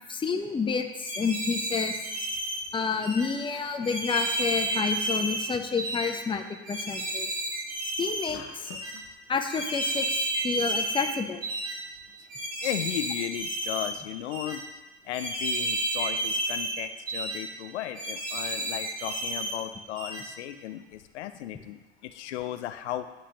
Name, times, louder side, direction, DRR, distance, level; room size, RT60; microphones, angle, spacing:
voice 1, 0.1-2.0 2.7-7.3 8.0-8.7 9.3-11.4, left 5 dB, 15° left, 5 dB, 0.7 m, -29 dB
sound 1, 1.0-2.6 3.0-3.3 3.8-5.4 5.8-6.1 6.7-8.3 8.7-8.9 9.5-11.1 11.4-11.8 12.3-13.9 14.3-14.6 15.1-16.7 17.1-17.4 17.9-19.5 20.0-20.2, right 1 dB, 45° right, 2.1 m, -31 dB
sound 2, 8.3-9.1, left 7 dB, 45° left, 0.9 m, -46 dB
voice 2, 12.6-14.6 15.0-23.1, left 12 dB, 80° left, 9 dB, 0.5 m, -35 dB
10.0 x 4.9 x 2.9 m, 1.1 s
hypercardioid pair, 75°, 34 cm